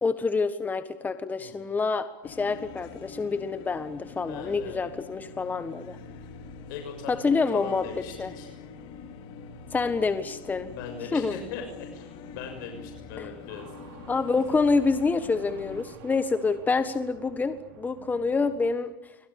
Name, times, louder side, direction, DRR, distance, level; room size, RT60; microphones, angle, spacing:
voice 1, 0.0-6.0 7.1-7.9 8.2-8.3 9.7-10.7 11.1-11.4 13.2-13.3 14.1-19.1, left 4 dB, 15° left, 10 dB, 1.5 m, -27 dB
voice 2, 1.4-1.8 4.3-4.8 6.7-8.5 10.7-14.0, left 6 dB, 70° left, 4 dB, 6.6 m, -40 dB
sound 1, 2.2-15.8, left 5 dB, 50° left, 4.3 m, -44 dB
sound 2, 13.5-18.8, right 9 dB, 75° right, 4.2 m, -50 dB
28.5 x 24.5 x 7.1 m, 0.95 s
supercardioid pair, 125°, 11 cm